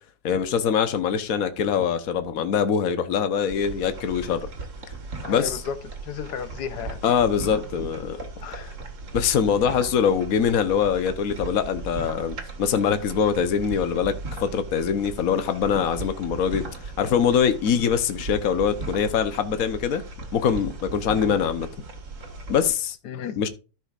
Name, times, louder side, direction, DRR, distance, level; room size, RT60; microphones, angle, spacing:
voice 1, 0.2-4.5 5.3-5.6 7.0-8.2 9.1-14.1 14.4-16.6 17.0-20.0 20.3-21.7 22.5-23.0 23.4-23.5, left 7 dB, 60° left, 1.4 m, -23 dB
sound 1, 3.5-22.7, right 3 dB, 50° right, 1.9 m, -37 dB
voice 2, 5.2-5.8 6.0-7.0 8.4-8.8 23.0-23.4, left 7 dB, 85° left, 1.5 m, -33 dB
13.0 x 6.3 x 2.4 m
omnidirectional pair, 1.7 m